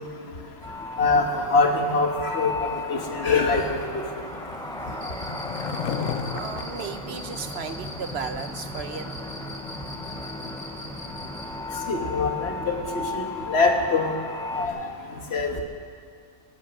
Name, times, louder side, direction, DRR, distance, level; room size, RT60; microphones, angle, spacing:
sound 1, 0.6-14.7, left 2 dB, 5° left, 0.7 m, -35 dB
voice 1, 1.0-2.5 2.9-3.6 11.9-14.1 14.6-14.8 15.3-15.6, left 3 dB, 55° left, 3 dB, 1.7 m, -23 dB
Skateboard, 2.7-8.1, left 8 dB, 85° left, 1.1 m, -36 dB
Cricket, 4.9-11.5, left 1 dB, 15° right, 2.1 m, -41 dB
voice 2, 6.3-9.1, right 6 dB, 60° right, 9 dB, 1.0 m, -35 dB
23.0 x 9.5 x 6.0 m, 2.2 s
omnidirectional pair, 1.3 m